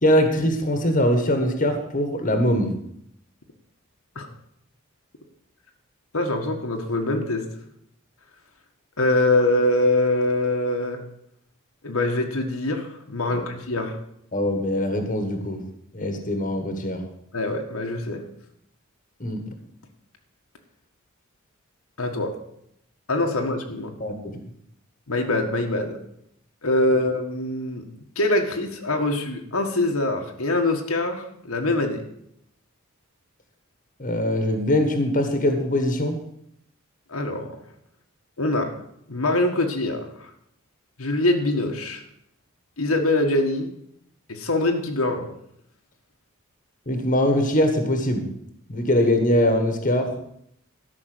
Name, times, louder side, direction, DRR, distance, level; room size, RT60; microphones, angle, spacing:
voice 1, 0.0-2.7 13.3-13.4 14.3-15.6 15.9-17.0 19.2-19.4 24.0-24.3 34.0-36.2 46.9-48.2 48.7-50.1, left 1 dB, 40° left, 6 dB, 1.6 m, -22 dB
voice 2, 6.1-7.4 9.0-11.0 11.8-14.0 17.3-18.2 22.0-22.3 23.1-23.9 25.1-26.0 26.6-27.8 28.1-32.0 37.1-37.6 38.4-38.7 39.1-40.3 41.0-42.0 42.8-43.7 44.3-45.3, left 2 dB, 85° left, 2 dB, 1.7 m, -24 dB
12.5 x 6.1 x 7.9 m, 0.73 s
head